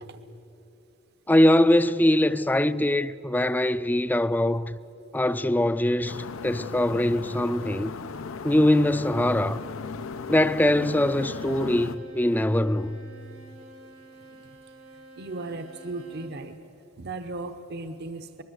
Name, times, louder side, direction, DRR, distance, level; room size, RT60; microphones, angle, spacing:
voice 1, 1.3-4.8 5.1-7.9 8.4-9.6 10.3-13.0, left 1 dB, 10° left, 0.5 m, -22 dB
sound 1, 6.0-12.0, left 5 dB, 80° left, 0.6 m, -37 dB
Bowed string instrument, 10.5-16.4, right 2 dB, 85° right, 3.3 m, -47 dB
voice 2, 15.2-16.6 17.0-18.4, right 2 dB, 55° right, 0.9 m, -37 dB
24.5 x 20.5 x 7.9 m
head